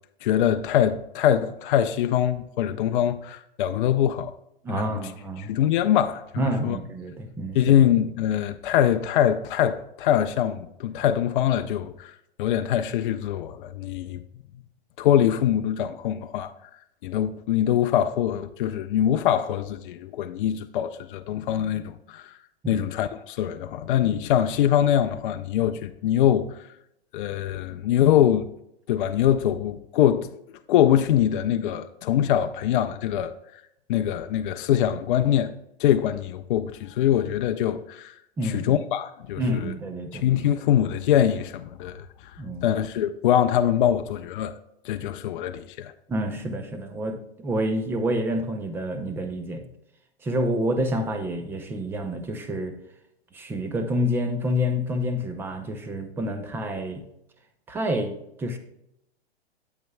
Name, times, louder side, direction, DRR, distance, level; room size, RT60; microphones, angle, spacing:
voice 1, 0.2-4.4 4.7-5.0 5.4-6.8 7.5-12.1 12.4-14.2 15.0-16.5 17.0-22.4 22.7-26.6 27.1-28.5 28.9-30.3 30.7-33.6 33.9-35.5 35.8-38.1 38.4-39.7 40.1-42.1 42.6-44.5 44.8-45.9, left 10 dB, 55° left, 0.5 m, -23 dB
voice 2, 4.6-5.5 6.4-7.7 22.6-22.8 38.4-38.8 39.4-40.3 42.4-42.7 46.1-49.7 50.2-52.7 53.3-57.1 57.7-58.6, equal, 5° right, 0.4 m, -28 dB
9.1 x 8.1 x 2.2 m
hypercardioid pair, 130°, 32 cm